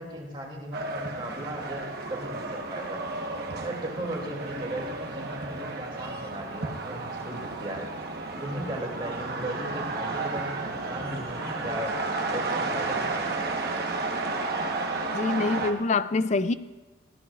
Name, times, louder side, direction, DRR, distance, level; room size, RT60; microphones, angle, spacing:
voice 1, 0.0-3.0 3.6-7.9 8.4-12.0 12.3-13.8, right 1 dB, 25° right, -1 dB, 2.7 m, -37 dB
sound 1, 0.7-15.7, right 3 dB, 50° right, 1.1 m, -32 dB
voice 2, 15.1-16.5, left 3 dB, 35° left, 14 dB, 0.4 m, -25 dB
19.5 x 15.0 x 2.4 m, 1.2 s
head